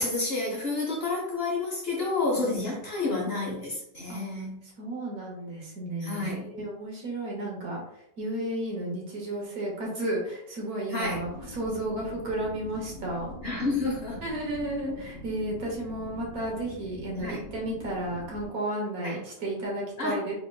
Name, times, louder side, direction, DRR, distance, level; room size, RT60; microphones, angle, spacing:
voice 1, 0.0-4.6 6.0-6.5 10.9-11.2 13.4-14.2 17.2-17.4 19.0-19.2 20.0-20.2, left 3 dB, 45° left, -3 dB, 0.9 m, -29 dB
voice 2, 2.4-2.8 4.1-4.2 4.6-7.8 8.2-13.4 14.2-20.3, right 1 dB, 70° right, -2 dB, 1.5 m, -33 dB
sound 1, 11.0-18.5, equal, 50° right, 1.0 m, -43 dB
3.5 x 3.5 x 2.3 m, 0.75 s
omnidirectional pair, 1.7 m